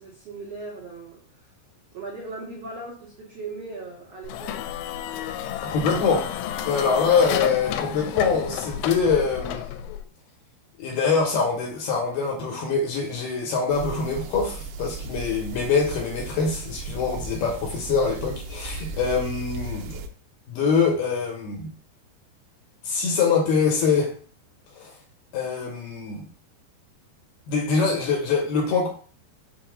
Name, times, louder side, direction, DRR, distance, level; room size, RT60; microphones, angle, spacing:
voice 1, 0.0-1.4 1.9-4.6, right 3 dB, 70° right, 1.5 m, -38 dB
sound 1, 4.2-10.0, left 10 dB, 90° left, 2.9 m, -31 dB
voice 2, 5.6-6.3 6.6-9.7 10.8-20.0 20.5-21.7 22.8-24.1 24.8-24.9 25.3-26.3 27.5-28.9, left 5 dB, 75° left, 2.5 m, -24 dB
sound 2, 13.7-20.1, right 3 dB, 90° right, 3.1 m, -36 dB
6.8 x 2.7 x 5.1 m
omnidirectional pair, 5.3 m